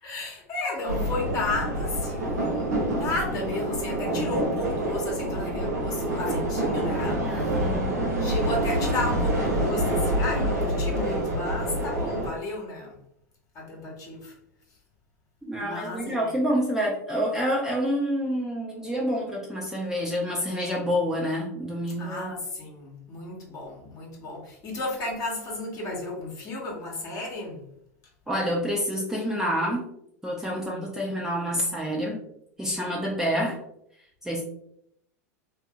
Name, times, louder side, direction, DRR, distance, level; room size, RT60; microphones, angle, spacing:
voice 1, 0.0-7.4 8.2-13.0 13.5-14.3 15.6-16.3 22.0-27.6 30.5-30.8, left 2 dB, 40° left, -2 dB, 1.0 m, -33 dB
sound 1, 0.9-12.3, right 1 dB, 85° right, 1.0 m, -27 dB
voice 2, 7.2-8.0 15.4-22.3 28.3-29.9 30.2-32.2 32.6-33.6 34.2-34.4, equal, 5° right, -4 dB, 0.6 m, -28 dB
2.6 x 2.5 x 2.4 m, 0.73 s
hypercardioid pair, 95°, 9 cm